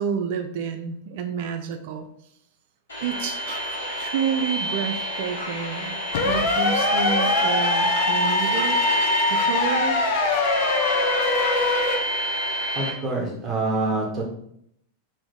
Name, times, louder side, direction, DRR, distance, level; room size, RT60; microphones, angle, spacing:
voice 1, 0.0-2.1 3.0-3.6 4.0-6.0 6.2-8.8 9.3-10.0, right 7 dB, 50° right, 7 dB, 0.3 m, -29 dB
sound 1, 2.9-12.9, right 1 dB, 70° left, 1.2 m, -28 dB
sound 2, 6.1-12.0, left 3 dB, 50° left, 0.5 m, -22 dB
voice 2, 12.7-14.2, right 2 dB, 20° right, -1 dB, 1.1 m, -26 dB
3.0 x 2.6 x 3.3 m, 0.72 s
figure-of-eight pair, 90°, 0 cm